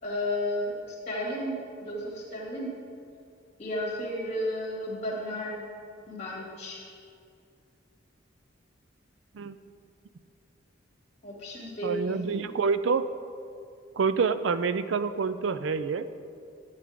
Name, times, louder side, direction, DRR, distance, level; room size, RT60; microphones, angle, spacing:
voice 1, 0.0-2.8 3.6-5.6 6.1-6.9 11.2-12.5, left 1 dB, 35° left, -3 dB, 2.8 m, -33 dB
voice 2, 11.8-13.0 14.0-16.1, right 5 dB, 80° right, 12 dB, 0.4 m, -27 dB
13.5 x 9.0 x 3.7 m, 2.4 s
head